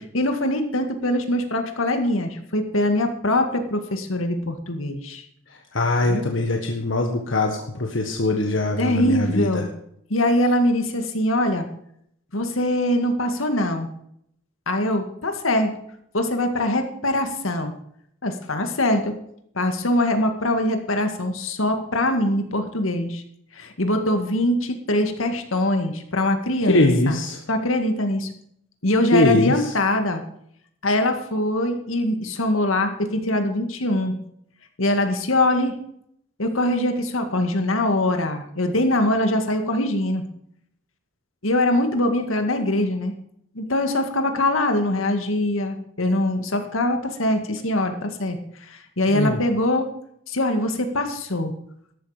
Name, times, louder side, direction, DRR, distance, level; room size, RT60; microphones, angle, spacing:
voice 1, 0.1-5.3 6.0-6.3 8.8-9.7 10.1-11.6 12.3-13.9 14.7-15.7 16.1-17.7 18.2-19.1 19.6-23.2 23.5-27.2 27.5-28.3 28.8-30.2 30.8-34.2 34.8-35.7 36.4-40.2 41.4-43.1 43.6-49.9 50.3-51.5, left 1 dB, 90° left, 6 dB, 2.0 m, -23 dB
voice 2, 5.7-9.6 26.7-27.4 29.1-29.7 49.1-49.4, left 2 dB, 75° left, 3 dB, 1.5 m, -21 dB
13.5 x 11.5 x 5.1 m, 0.70 s
head